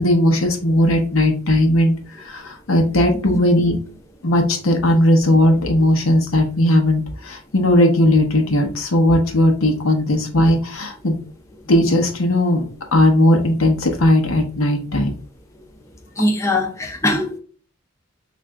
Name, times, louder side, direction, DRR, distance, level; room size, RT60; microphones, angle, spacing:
voice 1, 0.0-3.8 4.2-11.2 11.7-12.6 12.9-15.1, left 1 dB, 80° left, 0.8 m, -17 dB
voice 2, 16.2-17.4, left 1 dB, 15° left, 0.6 m, -21 dB
3.7 x 2.5 x 3.3 m
head